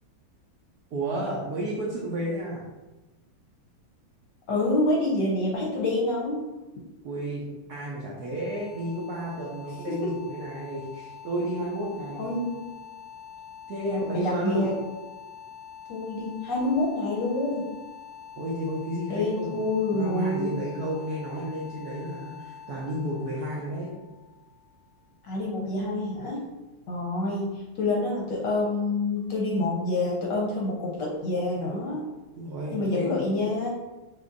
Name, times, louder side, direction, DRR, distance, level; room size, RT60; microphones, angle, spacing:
voice 1, 0.9-2.6 7.0-12.3 13.7-14.7 18.4-19.6 19.9-23.9 32.4-33.1, right 1 dB, 75° right, -4 dB, 0.9 m, -32 dB
voice 2, 4.5-6.4 9.9-10.2 12.2-12.7 13.9-14.7 15.9-17.6 19.1-20.5 25.2-26.4 26.9-32.0 32.7-33.7, left 2 dB, 65° left, -3 dB, 1.1 m, -27 dB
sound 1, 8.2-25.1, left 8 dB, 35° left, 0.8 m, -45 dB
6.0 x 2.7 x 2.5 m, 1.1 s
omnidirectional pair, 2.4 m